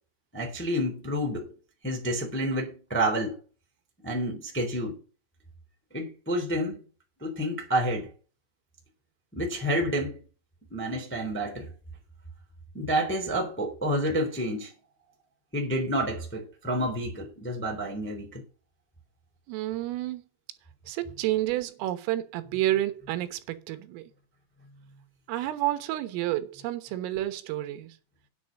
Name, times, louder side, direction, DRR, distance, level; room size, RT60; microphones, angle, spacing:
voice 1, 0.3-1.5 1.8-3.3 4.0-5.0 5.9-6.8 7.2-8.1 9.3-10.2 10.7-11.7 12.7-14.7 15.5-18.4, right 1 dB, 5° left, 1.8 m, -29 dB
voice 2, 19.5-20.2 20.9-24.0 25.3-28.0, right 15 dB, 85° right, 3.7 m, -30 dB
9.8 x 7.2 x 6.4 m
omnidirectional pair, 5.8 m